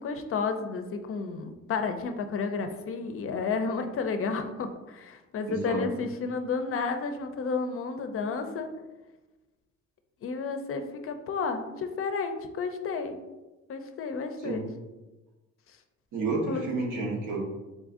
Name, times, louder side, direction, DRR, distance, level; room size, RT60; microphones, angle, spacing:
voice 1, 0.0-8.7 10.2-13.2 13.7-14.6 16.5-17.1, left 4 dB, 45° left, 7 dB, 0.5 m, -32 dB
voice 2, 5.5-5.8 14.4-14.6 16.1-17.4, right 3 dB, 85° right, -1 dB, 1.1 m, -30 dB
3.8 x 2.5 x 3.6 m, 1.1 s
cardioid pair, 90°, 30 cm